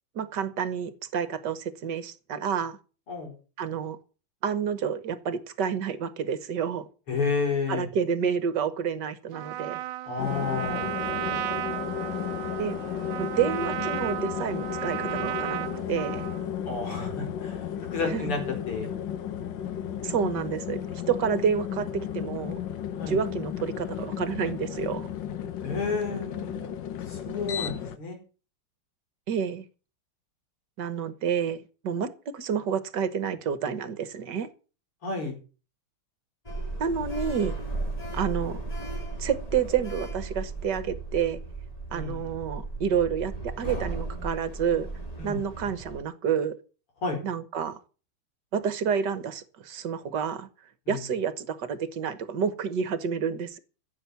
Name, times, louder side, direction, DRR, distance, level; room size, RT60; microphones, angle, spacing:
voice 1, 0.1-2.8 3.6-4.0 4.4-6.9 7.7-9.8 12.6-12.8 13.2-16.3 18.1-18.2 20.0-22.6 23.1-25.1 29.3-29.7 30.8-34.5 36.8-37.5 38.1-38.6 39.2-41.4 41.9-44.9 45.2-46.5 47.2-47.8 48.5-50.5 50.9-53.6, right 7 dB, 55° right, 1.7 m, -29 dB
voice 2, 7.1-7.9 10.1-10.9 16.7-18.4 18.7-18.9 23.0-23.2 25.6-26.7 27.1-28.2 35.0-35.4 41.9-42.3 45.2-45.7 47.0-47.2 50.9-51.1, left 4 dB, 90° left, 5.5 m, -31 dB
Trumpet, 9.3-16.5, right 13 dB, 80° right, 1.6 m, -34 dB
sound 1, 10.2-28.0, left 9 dB, 65° left, 1.6 m, -34 dB
Sliding door, 36.5-46.0, right 2 dB, 15° left, 2.5 m, -35 dB
15.0 x 7.8 x 7.0 m
omnidirectional pair, 2.4 m